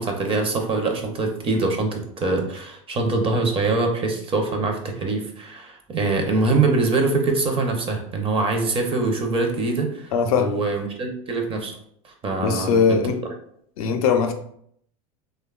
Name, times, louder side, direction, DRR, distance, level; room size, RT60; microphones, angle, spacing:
voice 1, 0.0-10.1 10.4-11.7 12.0-12.7, right 3 dB, 30° right, 3 dB, 0.6 m, -23 dB
voice 2, 10.1-10.6 12.4-13.2 13.8-14.3, left 6 dB, 80° left, 6 dB, 0.4 m, -20 dB
2.9 x 2.2 x 2.2 m, 0.67 s
hypercardioid pair, 95°, 18 cm